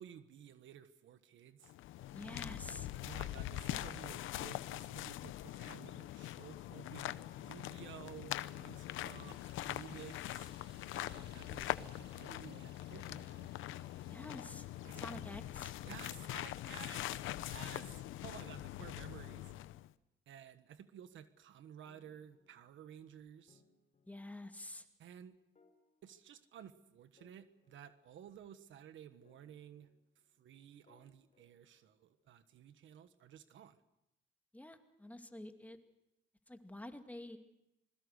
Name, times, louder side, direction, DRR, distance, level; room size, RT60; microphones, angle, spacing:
voice 1, 0.0-1.7 3.0-10.5 11.0-13.5 14.8-15.2 15.8-19.5 20.3-23.6 25.0-25.3 26.0-29.9 30.4-33.8, right 9 dB, 75° right, 11 dB, 1.4 m, -54 dB
sound 1, 1.6-19.9, left 14 dB, 90° left, 0.7 m, -43 dB
voice 2, 2.1-2.9 14.1-14.7 14.9-15.7 24.1-24.9 34.5-35.8 36.5-37.4, left 1 dB, 5° left, 6 dB, 2.3 m, -48 dB
sound 2, 8.8-15.2, right 7 dB, 60° right, 1.8 m, -67 dB
sound 3, 21.9-23.1 23.5-24.6 25.6-26.8 27.2-28.6 29.2-30.4 30.9-32.3, left 5 dB, 35° left, 4.9 m, -72 dB
27.0 x 21.5 x 6.6 m, 0.88 s
cardioid pair, 90°, 20 cm